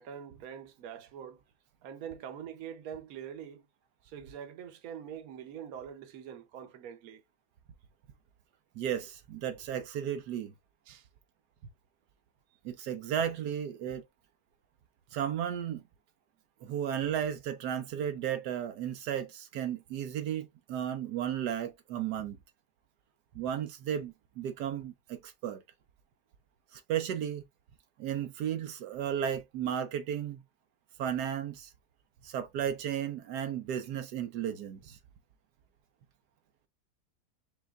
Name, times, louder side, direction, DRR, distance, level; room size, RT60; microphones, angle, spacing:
voice 1, 0.0-1.4 1.8-3.7 4.0-7.2 10.9-11.1, right 8 dB, 65° right, 1.3 m, -44 dB
voice 2, 8.7-10.5 12.6-14.0 15.1-15.8 16.6-22.4 23.3-25.6 26.7-27.4 28.0-30.4 31.0-31.7 32.2-35.0, right 9 dB, 85° right, 1.3 m, -34 dB
5.4 x 3.3 x 2.4 m
omnidirectional pair, 1.7 m